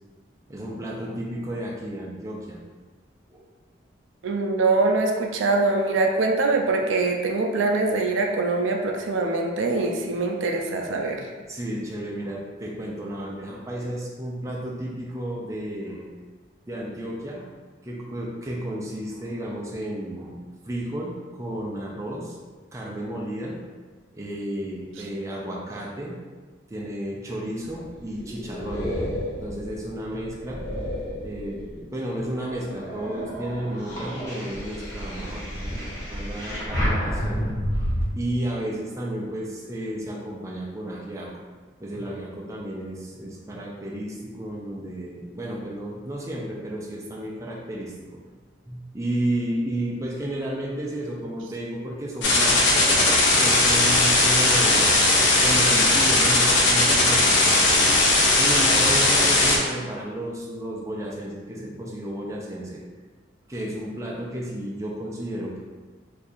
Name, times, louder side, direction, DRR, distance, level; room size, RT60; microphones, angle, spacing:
voice 1, 0.5-2.6 3.3-3.4 8.9-9.1 11.5-16.1 16.7-17.5 17.8-20.4 20.6-22.4 22.7-23.6 24.1-26.2 26.7-28.9 29.4-30.6 31.2-37.4 38.1-41.3 41.8-47.9 48.7-53.1 53.4-55.0 55.4-57.9 58.4-62.8 63.5-65.6, right 1 dB, 15° right, -4 dB, 0.4 m, -32 dB
voice 2, 4.2-11.2, right 3 dB, 75° right, 2 dB, 0.4 m, -23 dB
sound 1, 27.7-31.9 32.4-38.0, equal, 15° left, 0.8 m, -30 dB
sound 2, 52.2-59.6, left 2 dB, 65° left, 0.6 m, -18 dB
2.7 x 2.4 x 4.1 m, 1.4 s
head